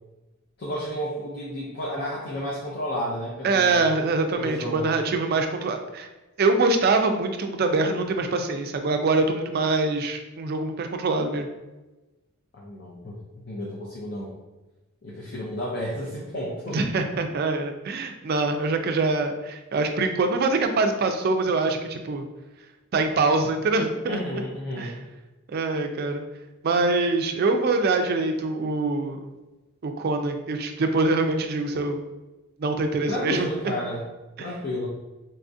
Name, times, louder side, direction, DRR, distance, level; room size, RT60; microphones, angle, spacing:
voice 1, 0.6-3.9 4.4-5.0 12.5-13.2 13.4-14.3 15.0-16.8 24.1-24.9 33.1-34.1 34.4-34.9, equal, 50° left, -4 dB, 0.5 m, -32 dB
voice 2, 3.4-6.1 6.4-11.5 16.7-22.3 22.9-24.2 24.8-24.9 25.5-26.2 26.6-29.2 29.8-32.0 32.6-33.7 34.4-34.5, right 3 dB, 45° right, 5 dB, 0.3 m, -24 dB
4.1 x 2.4 x 2.6 m, 1.1 s
head